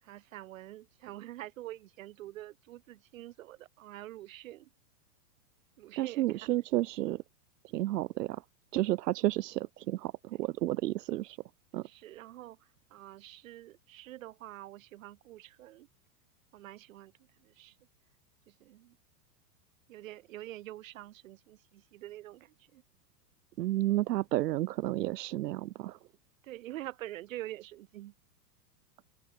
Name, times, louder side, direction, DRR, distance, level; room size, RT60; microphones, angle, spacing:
voice 1, 0.0-4.7 5.8-6.7 10.3-10.4 11.8-15.9 16.5-17.8 18.5-19.0 19.9-22.8 26.4-28.1, right 15 dB, 55° right, 2.1 m, -46 dB
voice 2, 6.0-7.2 7.7-8.4 8.7-11.4 11.7-11.9 23.6-26.0, right 15 dB, 85° right, 0.8 m, -31 dB
supercardioid pair, 175°, 47 cm